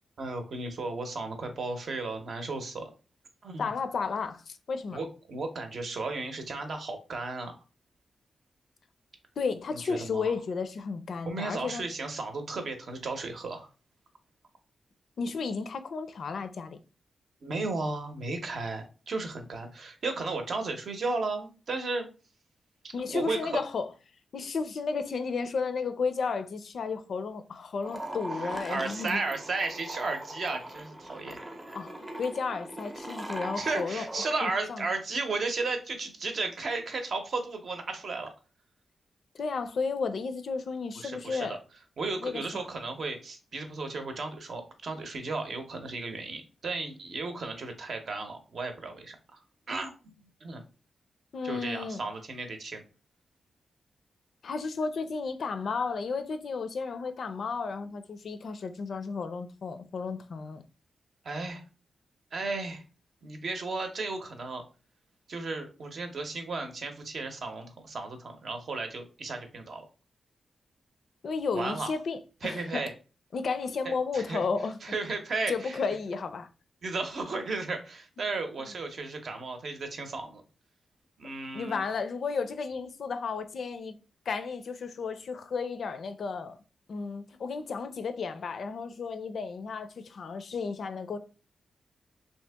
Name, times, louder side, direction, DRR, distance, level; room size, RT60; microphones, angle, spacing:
voice 1, 0.2-2.9 3.4-3.7 4.9-7.6 9.7-10.3 11.2-13.7 17.4-22.1 22.8-23.6 28.5-31.4 33.6-38.3 41.0-41.6 42.0-49.4 49.7-50.1 50.4-50.6 51.4-52.8 61.2-61.6 62.3-62.8 63.2-64.6 65.3-69.8 71.5-71.9 72.4-72.9 73.8-74.4 74.8-75.8 76.8-80.4 81.2-81.8, right 3 dB, 60° right, 0.7 m, -34 dB
voice 2, 3.6-5.0 9.4-11.9 15.2-16.8 22.9-23.9 24.3-29.2 31.7-34.1 34.4-34.9 39.3-41.6 42.2-42.4 51.3-52.0 54.4-60.6 71.2-72.8 73.3-74.8 75.5-76.5 78.6-78.7 81.5-84.0 84.3-86.6 86.9-91.2, left 4 dB, 65° left, 0.4 m, -33 dB
sound 1, 27.8-34.3, right 1 dB, 10° right, 0.6 m, -40 dB
2.8 x 2.7 x 3.4 m
wide cardioid pair, 130°, 0 cm